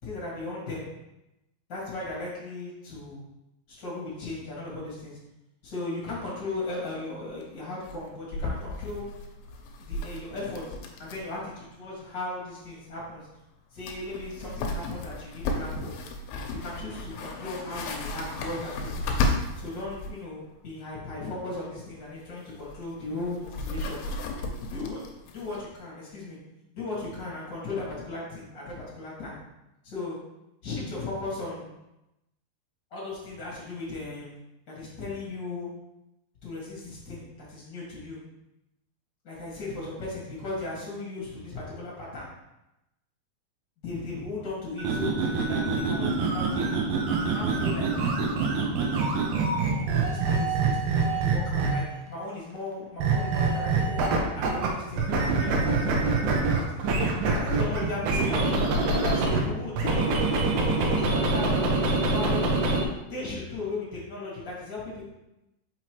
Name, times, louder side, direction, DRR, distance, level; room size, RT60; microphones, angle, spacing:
voice 1, 0.0-0.8 1.7-3.2 3.7-5.2 5.6-9.0 9.8-10.7 11.0-13.3 13.7-15.9 16.6-18.9 19.5-24.0 24.6-25.0 25.3-26.4 26.7-29.4 29.8-30.2 30.6-31.7 32.9-34.3 34.7-35.7 36.4-38.2 39.2-42.3 43.8-46.6 47.1-47.9 49.8-56.8 57.3-58.5 58.9-60.3 60.8-62.5 63.1-65.0, left 2 dB, 40° left, -6 dB, 1.8 m, -36 dB
sound 1, 6.6-6.7 6.8-6.9 7.2-7.4 7.8-11.4 11.6-11.7 13.4-13.5 13.8-20.2 22.0-25.7, left 2 dB, 90° left, 2.8 m, -34 dB
sound 2, 44.8-52.0 53.0-54.7 55.0-59.4 59.8-62.8, right 3 dB, 80° right, 2.8 m, -25 dB
5.9 x 5.7 x 3.1 m, 0.91 s
omnidirectional pair, 4.6 m